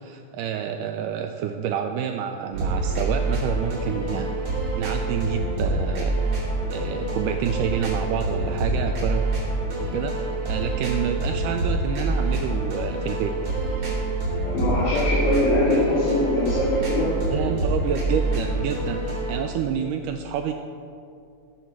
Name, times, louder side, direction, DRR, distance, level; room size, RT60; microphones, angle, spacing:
voice 1, 0.0-4.4 4.8-6.1 6.7-9.3 9.8-13.4 17.3-20.5, right 8 dB, 80° right, 5 dB, 2.0 m, -28 dB
sound 1, 2.5-19.4, right 2 dB, 50° right, 4.3 m, -26 dB
voice 2, 14.5-17.2, left 1 dB, 75° left, -10 dB, 4.1 m, -22 dB
20.5 x 7.3 x 4.6 m, 2.5 s
omnidirectional pair, 4.0 m